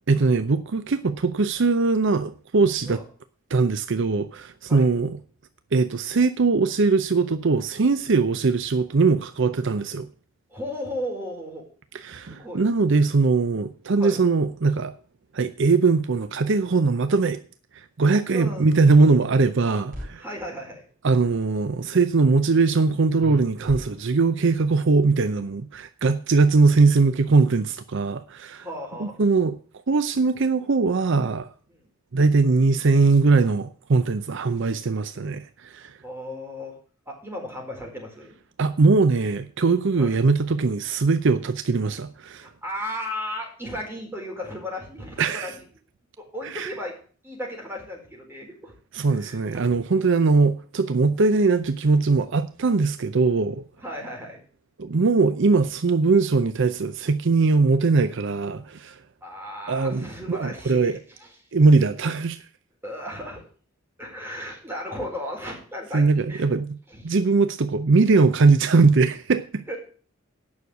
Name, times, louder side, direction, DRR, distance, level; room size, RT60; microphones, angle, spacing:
voice 1, 0.1-3.0 3.5-5.1 5.7-10.1 11.9-14.9 15.3-17.4 17.7-20.2 21.0-28.6 29.0-29.6 29.9-31.5 32.1-35.9 38.6-42.5 45.2-45.5 46.5-46.7 48.9-53.6 54.8-59.0 59.7-61.0 61.5-62.4 65.9-66.8 67.0-69.6, right 4 dB, 65° right, 0.6 m, -21 dB
voice 2, 10.5-11.6 12.1-12.6 14.0-14.2 18.3-18.6 20.2-20.9 28.6-29.2 36.0-36.8 37.1-38.3 39.9-40.2 42.4-45.6 46.2-46.9 47.2-48.7 49.1-49.7 51.0-51.2 53.8-54.4 59.2-60.9 61.2-61.3 62.8-63.4 64.0-66.4 66.9-67.0 69.7-69.8, left 1 dB, 10° right, 4.4 m, -35 dB
sound 1, 19.5-20.1 23.2-24.4, equal, 45° right, 4.4 m, -37 dB
9.5 x 6.4 x 8.3 m
head